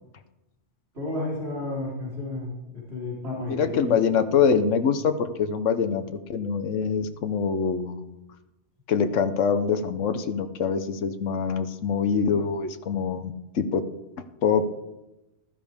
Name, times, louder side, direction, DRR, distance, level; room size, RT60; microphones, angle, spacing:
voice 1, 0.9-3.9, left 2 dB, 60° right, -6 dB, 4.1 m, -32 dB
voice 2, 3.5-8.1 8.9-13.8 14.4-14.7, left 6 dB, 85° left, 9 dB, 1.2 m, -24 dB
15.0 x 13.0 x 3.6 m, 0.97 s
omnidirectional pair, 1.3 m